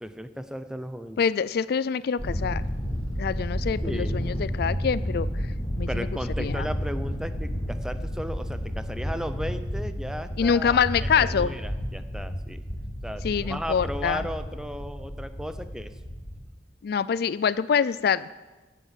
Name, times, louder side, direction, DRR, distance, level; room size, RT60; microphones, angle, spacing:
voice 1, 0.0-1.2 3.8-4.2 5.9-12.6 13.0-15.9, equal, 5° right, 10 dB, 0.7 m, -35 dB
voice 2, 1.2-2.6 3.2-6.1 6.4-6.7 10.4-11.5 13.2-14.2 16.8-18.3, left 6 dB, 65° left, 18 dB, 0.4 m, -25 dB
Thunder, 2.2-16.4, equal, 35° left, 3.7 m, -31 dB
15.0 x 8.3 x 7.6 m, 1.2 s
head